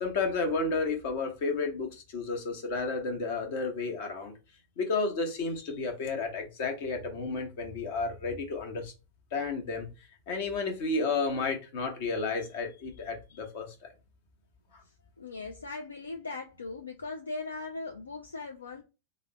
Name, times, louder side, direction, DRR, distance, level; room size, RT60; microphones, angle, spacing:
voice 1, 0.0-4.3 4.8-8.9 9.3-9.9 10.3-13.9 14.7-14.8, left 3 dB, 50° left, 0.9 m, -32 dB
voice 2, 15.2-18.8, left 3 dB, 75° left, 0.4 m, -39 dB
3.3 x 2.1 x 4.0 m
figure-of-eight pair, 90°, 0 cm